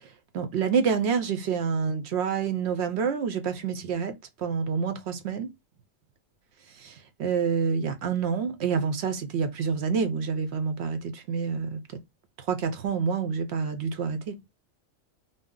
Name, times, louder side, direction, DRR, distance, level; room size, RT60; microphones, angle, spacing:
voice 1, 0.3-5.5 7.2-11.8 12.5-14.4, right 6 dB, 65° right, 0.8 m, -27 dB
2.6 x 2.0 x 3.6 m
omnidirectional pair, 1.3 m